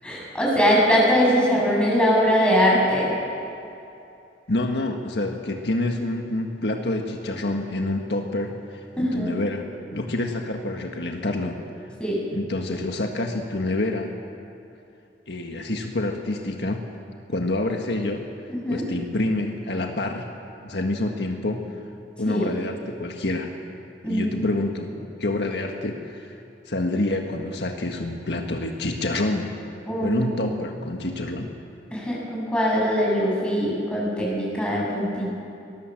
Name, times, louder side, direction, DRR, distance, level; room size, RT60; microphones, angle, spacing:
voice 1, 0.0-3.1 9.0-9.3 12.0-12.2 18.5-18.8 22.3-22.5 24.0-24.3 29.9-30.4 31.9-35.3, equal, 5° left, -4 dB, 7.3 m, -22 dB
voice 2, 4.5-11.6 12.3-14.1 15.3-16.8 17.3-18.2 18.7-20.3 20.6-21.6 22.2-23.5 24.0-24.9 25.2-26.3 26.7-29.5 30.0-31.5, left 2 dB, 70° left, 3 dB, 1.6 m, -27 dB
23.5 x 20.0 x 7.7 m, 2.7 s
head